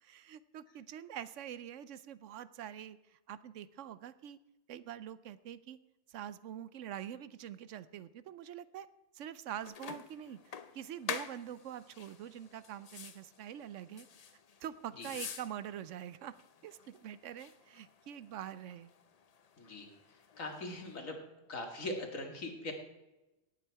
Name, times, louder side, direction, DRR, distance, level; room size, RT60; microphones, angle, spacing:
voice 1, 0.0-4.4 4.7-5.8 6.1-8.9 9.1-14.1 14.6-16.3 16.6-18.9, right 10 dB, 75° right, 16 dB, 0.9 m, -45 dB
sound 1, 9.6-21.0, left 6 dB, 45° left, 0.5 m, -48 dB
voice 2, 19.6-19.9 20.4-21.2 21.5-22.7, left 2 dB, 85° left, 3 dB, 2.4 m, -41 dB
17.5 x 8.4 x 4.7 m, 1.0 s
omnidirectional pair, 1.3 m